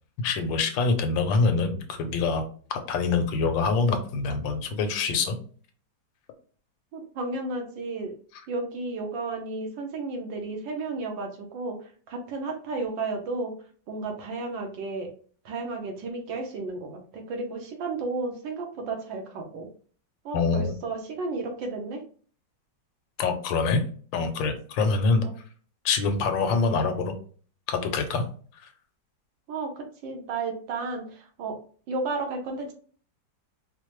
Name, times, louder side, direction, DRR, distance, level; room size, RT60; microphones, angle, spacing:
voice 1, 0.2-2.4 2.9-5.3 20.3-20.7 23.2-23.8 24.1-25.2 25.8-27.1 27.7-28.2 28.6-28.7, left 4 dB, 85° left, 7 dB, 1.4 m, -25 dB
voice 2, 6.9-8.1 8.5-13.5 13.9-15.1 15.4-19.7 20.2-22.0 25.2-25.3 29.5-31.6 31.9-32.7, right 3 dB, 80° right, 3 dB, 1.6 m, -33 dB
4.6 x 2.1 x 3.0 m, 0.44 s
omnidirectional pair, 2.0 m